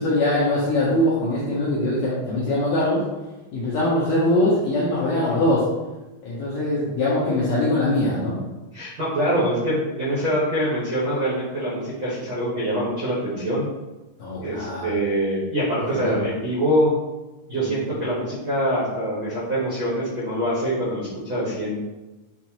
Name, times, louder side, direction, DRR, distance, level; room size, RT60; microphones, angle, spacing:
voice 1, 0.0-3.1 3.5-5.6 6.2-8.4 14.2-14.9 16.0-16.2 17.5-17.9, left 1 dB, 80° left, -7 dB, 1.6 m, -22 dB
voice 2, 8.7-13.7 14.4-16.9 17.5-21.8, equal, 75° right, -9 dB, 1.1 m, -24 dB
5.7 x 2.4 x 2.8 m, 1.1 s
omnidirectional pair, 3.9 m